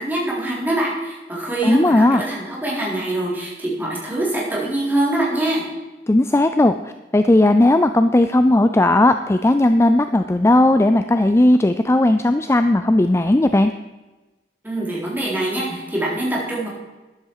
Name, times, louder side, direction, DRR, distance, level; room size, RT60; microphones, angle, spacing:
voice 1, 0.0-5.6 14.6-16.7, right 1 dB, 10° right, -5 dB, 3.9 m, -24 dB
voice 2, 1.6-2.2 6.1-6.7 7.1-13.7, left 1 dB, 15° left, 9 dB, 0.4 m, -16 dB
13.0 x 10.5 x 4.8 m, 1.1 s
head